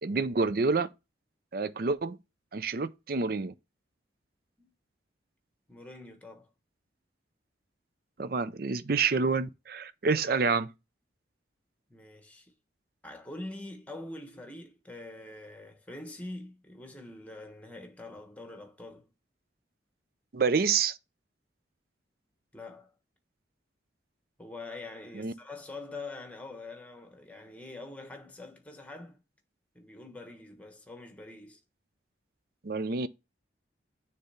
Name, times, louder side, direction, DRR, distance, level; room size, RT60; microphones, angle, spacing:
voice 1, 0.0-0.9 1.5-2.2 2.5-3.5 8.2-10.7 20.3-21.0 25.1-25.3 32.6-33.1, right 4 dB, 55° right, 0.5 m, -28 dB
voice 2, 5.7-6.5 10.1-10.4 11.9-12.5 13.0-19.1 22.5-22.9 24.4-29.2 29.7-31.6, left 2 dB, 10° left, 1.2 m, -44 dB
6.7 x 3.4 x 5.6 m
head